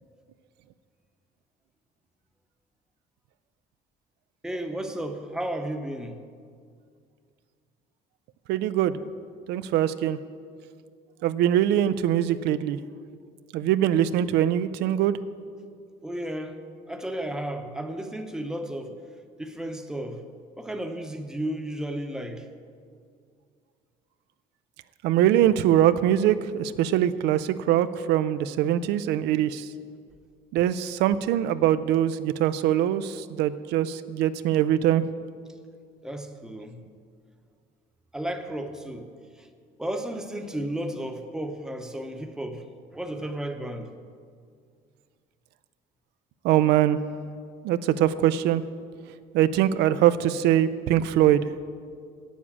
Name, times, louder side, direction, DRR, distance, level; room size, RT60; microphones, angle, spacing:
voice 1, 4.4-6.2 16.0-19.0 19.4-20.2 20.5-22.5 36.0-36.8 38.1-39.5 39.8-42.7 42.9-43.9, right 1 dB, 5° right, 0.9 m, -33 dB
voice 2, 8.5-8.9 9.5-10.2 11.2-12.8 13.5-15.2 25.0-29.7 30.5-35.0 46.4-47.0 47.6-48.6 49.3-51.5, right 11 dB, 85° right, 0.4 m, -22 dB
8.3 x 7.3 x 8.6 m
cardioid pair, 110°, 17 cm